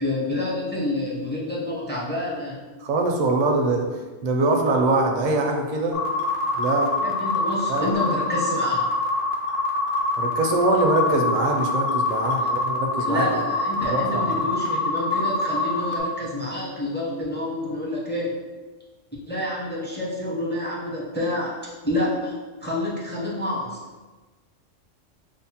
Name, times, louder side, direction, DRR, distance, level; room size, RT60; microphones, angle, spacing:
voice 1, 0.0-2.6 7.0-8.9 12.4-12.5 13.1-18.3 19.3-22.4 22.6-23.8, left 1 dB, 15° left, -6 dB, 0.4 m, -28 dB
voice 2, 2.8-3.9 4.2-6.1 6.5-6.9 7.7-7.9 10.2-13.4 13.9-14.4, right 2 dB, 60° right, 1 dB, 0.5 m, -23 dB
sound 1, 5.9-16.0, left 3 dB, 55° left, 0.7 m, -25 dB
5.3 x 2.1 x 2.8 m, 1.3 s
omnidirectional pair, 1.3 m